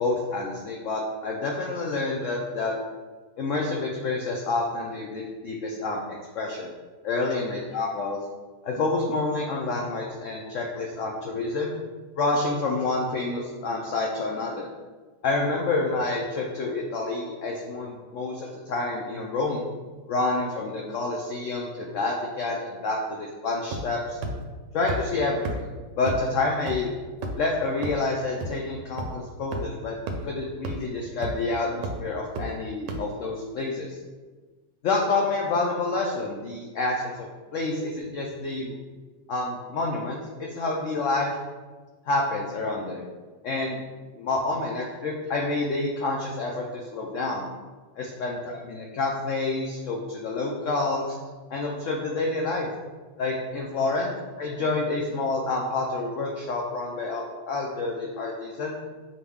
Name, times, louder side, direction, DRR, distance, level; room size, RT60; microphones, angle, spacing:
voice 1, 0.0-2.8 3.4-6.7 7.0-8.2 8.6-11.7 12.2-14.7 15.2-19.6 20.1-24.2 24.7-25.7 26.0-26.9 27.3-30.0 30.2-34.0 34.8-38.8 39.3-41.3 42.1-43.1 43.4-43.8 44.1-47.5 48.0-51.2 51.5-52.7 53.2-58.8, left 3 dB, 85° left, -1 dB, 0.6 m, -28 dB
sound 1, 23.7-24.0 24.2-24.3 24.9-25.0 25.4-25.5 26.1-26.2 26.7-26.8 27.2-27.4 27.8-27.9 28.4-28.5 29.0-29.1 29.5-29.6 30.1-30.2 30.6-30.7 31.2-31.4 31.8-31.9 32.4-32.5 32.9-33.0, right 2 dB, 80° right, 1.2 m, -30 dB
6.1 x 2.2 x 3.5 m, 1.3 s
omnidirectional pair, 1.9 m